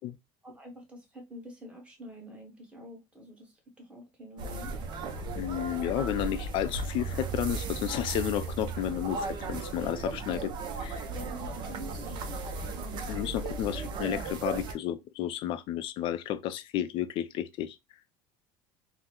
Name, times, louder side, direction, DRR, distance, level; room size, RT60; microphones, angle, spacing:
voice 1, 0.4-4.8 11.1-12.4, right 1 dB, 10° right, 1.2 m, -47 dB
sound 1, 4.4-14.7, right 3 dB, 45° right, 0.6 m, -36 dB
voice 2, 5.3-10.5 10.8-11.1 13.1-17.8, left 11 dB, 50° left, 0.4 m, -32 dB
3.5 x 2.1 x 2.9 m
cardioid pair, 130°, 11 cm